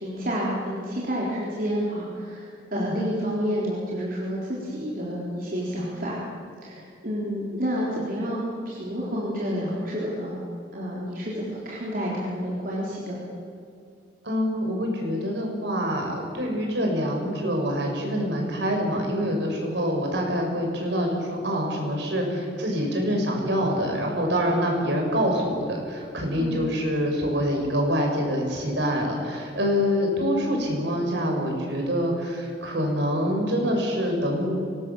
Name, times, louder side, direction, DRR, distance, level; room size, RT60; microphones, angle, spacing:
voice 1, 0.0-6.2 6.6-8.4 8.7-10.4 10.7-13.2 26.4-26.6, equal, 50° right, -5 dB, 3.9 m, -29 dB
voice 2, 14.2-34.5, equal, 65° right, 1 dB, 5.9 m, -25 dB
25.0 x 19.5 x 7.2 m, 2.3 s
head